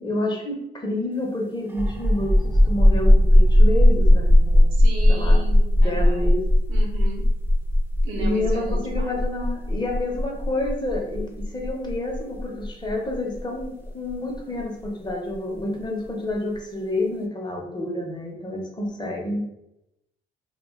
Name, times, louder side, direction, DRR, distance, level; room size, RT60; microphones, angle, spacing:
voice 1, 0.0-2.4 2.6-4.7 5.1-5.4 5.8-6.5 8.2-19.4, left 1 dB, 20° left, 0 dB, 0.7 m, -29 dB
sound 1, 1.7-15.1, left 1 dB, 10° right, 0.5 m, -18 dB
voice 2, 4.7-6.4 6.7-7.2 8.0-9.2, right 1 dB, 90° right, 1 dB, 0.7 m, -36 dB
2.4 x 2.2 x 3.5 m, 0.85 s
cardioid pair, 90°, 20 cm